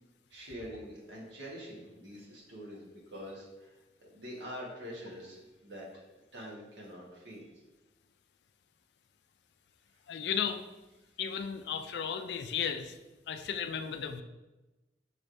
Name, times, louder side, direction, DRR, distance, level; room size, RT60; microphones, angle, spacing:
voice 1, 0.3-3.7 4.0-7.4, equal, 90° right, -3 dB, 1.3 m, -45 dB
voice 2, 10.1-10.7 11.2-13.0 13.3-14.2, left 7 dB, 70° left, 8 dB, 0.3 m, -34 dB
6.1 x 3.3 x 2.6 m, 1.1 s
head